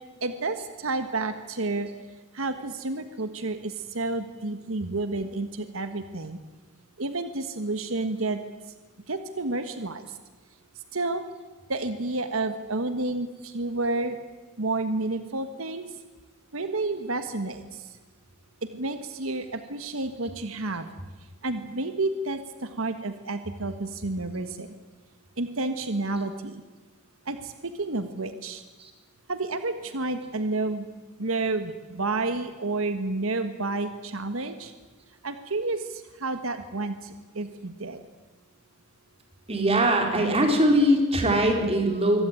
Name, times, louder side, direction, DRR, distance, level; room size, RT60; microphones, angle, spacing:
voice 1, 0.2-1.9 2.3-6.4 7.0-8.4 9.1-10.2 10.9-11.2 11.7-14.2 14.6-15.9 16.5-18.0 18.7-20.9 21.4-24.8 25.4-26.6 27.2-28.6 29.3-30.9 31.2-34.7 35.2-38.0, right 2 dB, 85° right, 9 dB, 1.5 m, -30 dB
voice 2, 39.5-42.3, right 1 dB, 30° right, 3 dB, 4.3 m, -21 dB
24.5 x 17.0 x 9.2 m, 1.3 s
head